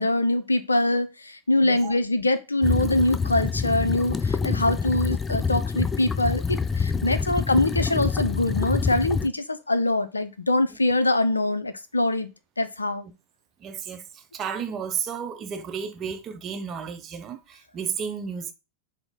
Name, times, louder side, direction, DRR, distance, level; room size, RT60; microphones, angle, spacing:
voice 1, 0.0-12.3 12.6-13.0, left 1 dB, 80° left, 0.4 m, -24 dB
voice 2, 1.6-1.9 7.0-7.3 13.6-18.5, right 7 dB, 30° right, 0.6 m, -33 dB
sound 1, 2.6-9.3, left 5 dB, 15° left, 0.3 m, -26 dB
5.9 x 2.0 x 3.8 m
figure-of-eight pair, 90°, 0 cm